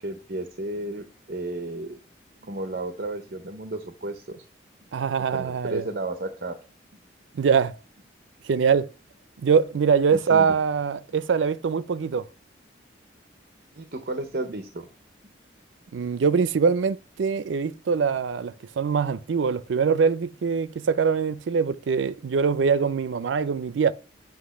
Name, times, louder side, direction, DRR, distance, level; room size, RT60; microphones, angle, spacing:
voice 1, 0.0-2.0 2.4-4.4 5.3-6.6 10.3-10.5 13.7-14.9, right 2 dB, 55° right, 0.7 m, -33 dB
voice 2, 4.9-5.9 7.3-7.8 8.4-8.9 9.4-12.3 15.9-23.9, right 6 dB, 85° right, 0.4 m, -23 dB
7.9 x 3.0 x 6.2 m
head